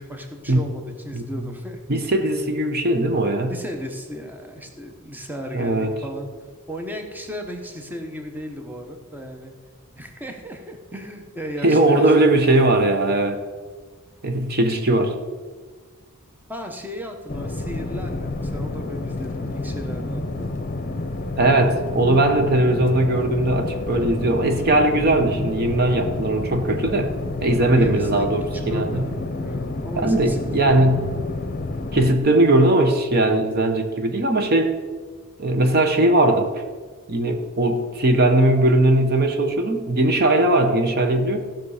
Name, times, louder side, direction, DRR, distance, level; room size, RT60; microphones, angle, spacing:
voice 1, 0.0-1.8 3.5-6.3 6.7-9.5 10.0-12.3 16.5-20.2 27.6-30.8, equal, 10° right, 3 dB, 1.0 m, -35 dB
voice 2, 1.9-3.5 5.5-5.9 11.6-13.4 14.2-15.2 21.4-27.1 27.4-29.1 30.0-31.1 31.9-34.8 35.4-36.6 37.1-41.4, right 1 dB, 45° right, 6 dB, 0.9 m, -19 dB
sound 1, 17.3-32.2, left 2 dB, 40° left, 0.8 m, -29 dB
15.5 x 6.0 x 4.9 m, 1.4 s
head